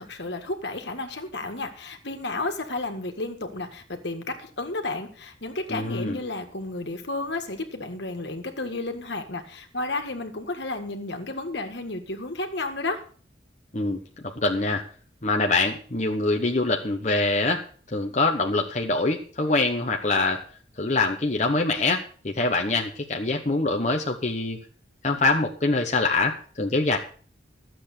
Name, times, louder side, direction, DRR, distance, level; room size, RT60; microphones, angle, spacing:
voice 1, 0.0-13.0, left 2 dB, 70° left, 6 dB, 1.9 m, -32 dB
voice 2, 5.7-6.2 13.7-14.0 14.4-14.8 15.2-17.6 17.9-20.4 20.8-24.6 25.0-27.0, left 3 dB, 40° left, 2 dB, 1.0 m, -24 dB
13.0 x 7.7 x 6.7 m, 0.43 s
head